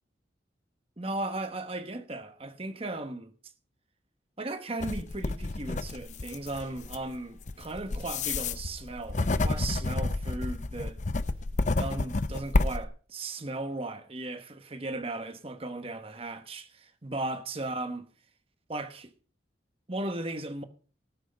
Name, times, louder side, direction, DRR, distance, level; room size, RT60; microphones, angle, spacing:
voice 1, 1.0-3.3 4.4-11.0 11.8-18.0 18.7-19.1 19.9-20.6, right 2 dB, 30° right, 1.1 m, -36 dB
sound 1, 4.8-12.9, left 2 dB, 40° left, 0.6 m, -30 dB
18.5 x 6.5 x 5.1 m
head